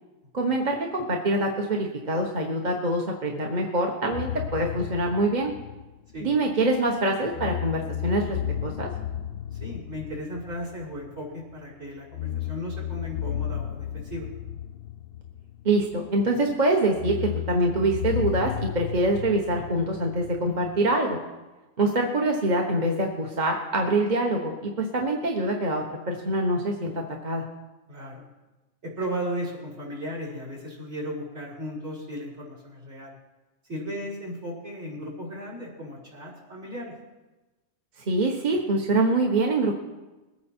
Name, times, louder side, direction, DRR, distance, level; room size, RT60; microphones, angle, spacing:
voice 1, 0.3-5.5 6.2-8.9 15.6-21.2 21.8-26.9 27.2-27.4 38.1-39.8, right 2 dB, 35° right, 1 dB, 1.2 m, -25 dB
sound 1, 4.1-6.9 7.3-11.6 12.1-16.2 16.9-20.9, left 11 dB, 65° left, 0.6 m, -34 dB
voice 2, 9.6-14.3 27.9-28.3 28.8-33.1 33.7-36.9, equal, 55° right, -3 dB, 4.6 m, -35 dB
21.0 x 9.4 x 4.4 m, 1.1 s
omnidirectional pair, 1.4 m